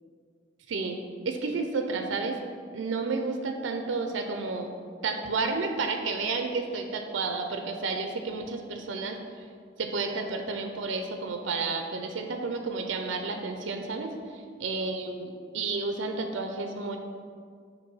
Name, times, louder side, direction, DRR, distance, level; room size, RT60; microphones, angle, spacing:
voice 1, 0.7-1.0 1.3-2.3 2.7-4.7 5.0-9.2 9.8-17.0, right 4 dB, 75° right, 4 dB, 0.5 m, -31 dB
7.2 x 2.7 x 5.5 m, 2.2 s
head